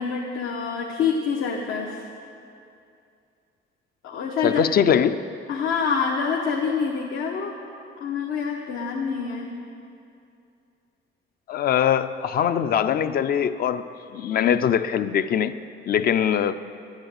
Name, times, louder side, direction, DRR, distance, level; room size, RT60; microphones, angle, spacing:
voice 1, 0.0-2.0 4.0-4.6 5.5-7.6 8.0-9.5, left 5 dB, 80° left, -1 dB, 1.1 m, -26 dB
voice 2, 4.4-5.2 11.5-13.9 14.1-15.6 15.9-16.5, left 8 dB, 45° left, 12 dB, 0.4 m, -22 dB
11.0 x 10.5 x 6.6 m, 2.5 s
cardioid pair, 165°, 21 cm